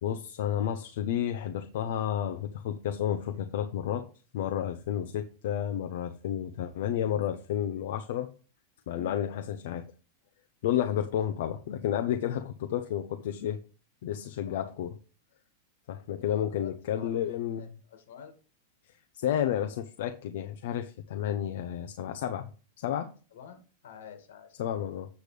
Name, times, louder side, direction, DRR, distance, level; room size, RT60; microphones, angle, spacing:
voice 1, 0.0-4.0 4.3-8.3 8.9-9.8 10.6-13.6 14.0-14.9 15.9-17.6 19.1-22.5 22.8-23.1 24.6-25.1, left 10 dB, 60° left, 6 dB, 0.6 m, -31 dB
voice 2, 14.4-14.8 16.2-18.4 23.3-24.9, left 8 dB, 80° left, 7 dB, 2.0 m, -49 dB
8.1 x 6.7 x 3.3 m, 0.36 s
supercardioid pair, 165°, 0 cm